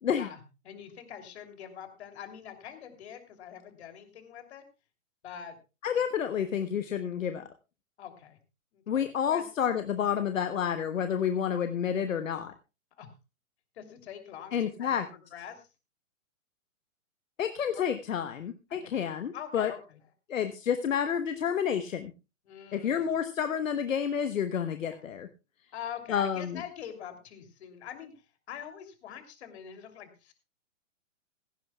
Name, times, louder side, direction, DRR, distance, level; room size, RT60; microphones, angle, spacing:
voice 1, 0.1-4.6 5.2-5.6 8.0-8.4 8.7-9.5 13.0-13.1 13.8-15.0 15.3-15.6 18.8-19.1 19.3-20.0 22.5-23.1 24.9-25.0 25.7-28.1 28.5-30.3, left 9 dB, 55° left, 6 dB, 3.0 m, -44 dB
voice 2, 5.8-7.5 8.9-12.5 14.5-15.1 17.4-19.7 20.3-22.1 22.7-25.3 26.1-26.6, left 8 dB, 75° left, 9 dB, 1.1 m, -29 dB
16.5 x 15.5 x 2.3 m, 0.29 s
hypercardioid pair, 130°, 39 cm